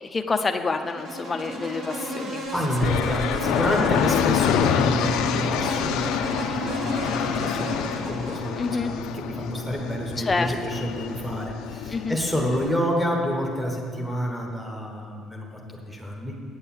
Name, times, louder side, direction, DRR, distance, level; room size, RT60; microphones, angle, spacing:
voice 1, 0.0-2.4 3.9-4.0 8.6-8.9 10.2-10.5 11.9-12.2, left 4 dB, 15° left, 5 dB, 0.5 m, -27 dB
Insect, 0.7-8.9, equal, 60° right, 1.6 m, -32 dB
voice 2, 2.5-15.5 15.8-16.3, equal, 5° right, -2 dB, 1.3 m, -28 dB
sound 1, 2.8-12.7, left 9 dB, 80° left, 0.4 m, -27 dB
9.3 x 6.9 x 7.3 m, 2.2 s
cardioid pair, 180°, 0 cm